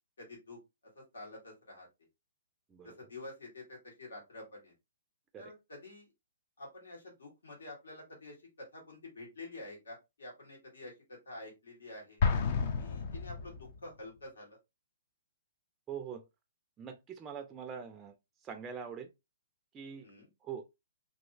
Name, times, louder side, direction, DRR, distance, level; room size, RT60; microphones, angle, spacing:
voice 1, 0.2-0.6 0.9-1.9 2.8-4.7 5.4-6.1 6.6-12.2 12.8-14.6 20.0-20.3, left 2 dB, 85° left, 1.8 m, -48 dB
Explosion, 12.2-13.9, left 5 dB, 45° left, 0.5 m, -31 dB
voice 2, 15.9-16.2 16.8-18.1 18.4-19.1 19.7-20.1 20.4-20.6, right 7 dB, 15° right, 0.4 m, -43 dB
2.9 x 2.7 x 2.6 m
hypercardioid pair, 145°, 0 cm